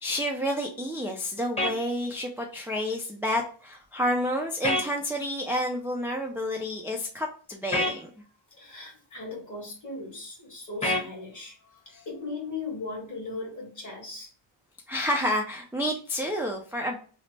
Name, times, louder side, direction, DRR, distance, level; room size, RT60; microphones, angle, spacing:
voice 1, 0.0-8.1 11.9-12.0 14.9-16.9, equal, 5° right, 0 dB, 0.4 m, -29 dB
sound 1, 1.6-1.8 4.6-4.9 7.7-8.0 10.8-11.1, left 1 dB, 15° left, 1.0 m, -25 dB
voice 2, 8.5-14.3, left 3 dB, 40° left, -1 dB, 1.6 m, -38 dB
3.2 x 2.1 x 4.0 m, 0.41 s
wide cardioid pair, 110°, 49 cm